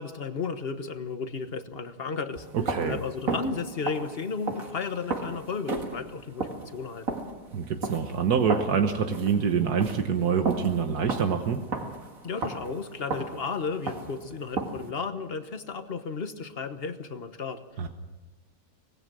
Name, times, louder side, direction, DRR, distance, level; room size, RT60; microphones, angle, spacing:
voice 1, 0.0-2.5 2.8-7.1 12.2-17.6, left 5 dB, 40° left, 9 dB, 1.3 m, -34 dB
sound 1, 2.3-14.9, right 3 dB, 60° right, 2.4 m, -34 dB
voice 2, 2.5-3.0 7.5-11.6 17.8-17.9, right 6 dB, 85° right, 6 dB, 1.7 m, -26 dB
25.0 x 19.0 x 6.2 m, 1.2 s
omnidirectional pair, 1.6 m